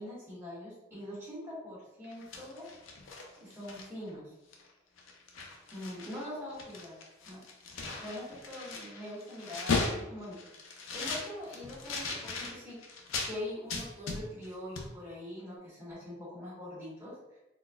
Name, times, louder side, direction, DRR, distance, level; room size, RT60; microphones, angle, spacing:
voice 1, 0.0-2.7 3.4-4.3 5.7-7.0 7.3-7.4 8.0-12.8 13.2-17.4, left 1 dB, 10° right, -9 dB, 1.3 m, -43 dB
sound 1, 2.0-4.1 4.5-4.7 5.0-6.2 6.5-13.3 13.7-14.5 14.8-14.9, left 4 dB, 80° left, 0.5 m, -37 dB
3.9 x 2.2 x 2.3 m, 0.95 s
head